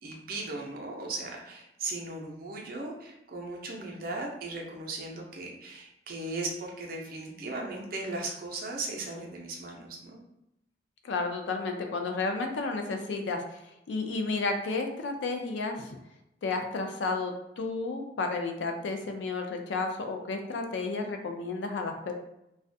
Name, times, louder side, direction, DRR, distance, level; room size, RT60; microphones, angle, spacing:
voice 1, 0.0-10.2, right 2 dB, 55° right, 0 dB, 0.5 m, -37 dB
voice 2, 11.0-13.6 13.9-16.0 16.4-22.1, left 3 dB, 85° left, 4 dB, 0.4 m, -32 dB
2.3 x 2.1 x 2.6 m, 0.86 s
head